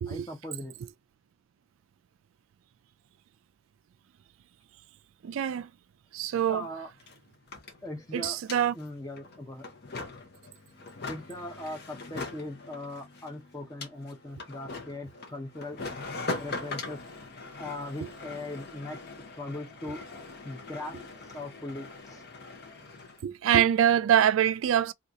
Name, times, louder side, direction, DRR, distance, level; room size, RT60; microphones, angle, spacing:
voice 1, 0.1-0.7 6.5-6.9 7.8-8.4 8.7-9.7 11.1-15.8 16.4-17.0 17.6-19.0 19.4-20.0 20.4-22.3, left 1 dB, 15° left, 0.7 m, -39 dB
voice 2, 5.2-5.7 6.1-6.7 8.1-8.7 23.2-24.9, right 9 dB, 75° right, 0.3 m, -24 dB
sound 1, 6.3-6.4 6.6-23.2, left 3 dB, 50° left, 0.8 m, -41 dB
2.8 x 2.4 x 3.5 m
head